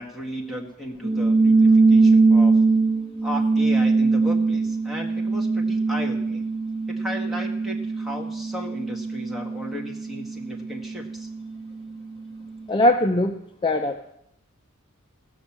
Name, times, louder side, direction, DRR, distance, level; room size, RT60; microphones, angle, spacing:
voice 1, 0.0-2.6 3.2-6.5 6.9-11.3, equal, ahead, -1 dB, 1.8 m, -35 dB
sound 1, 1.0-11.9, right 3 dB, 25° right, 1.1 m, -21 dB
voice 2, 12.7-14.0, left 1 dB, 20° left, 4 dB, 0.6 m, -21 dB
17.0 x 6.4 x 7.3 m, 0.78 s
head